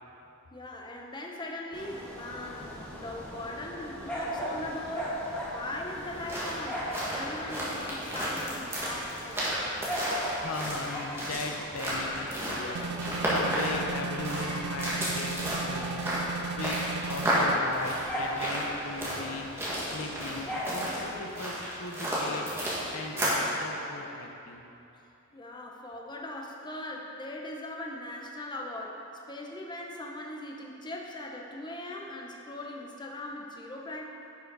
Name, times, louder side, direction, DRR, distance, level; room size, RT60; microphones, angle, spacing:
voice 1, 0.5-9.7 25.3-34.1, left 1 dB, 20° left, 0 dB, 0.7 m, -40 dB
sound 1, 1.7-21.1, equal, 5° left, 1.4 m, -39 dB
sound 2, 6.0-23.5, equal, 10° right, 1.8 m, -32 dB
voice 2, 10.3-24.6, left 3 dB, 85° left, 2 dB, 0.8 m, -39 dB
sound 3, 12.7-17.6, right 5 dB, 55° right, 0.3 m, -36 dB
10.5 x 5.7 x 4.0 m, 2.9 s
head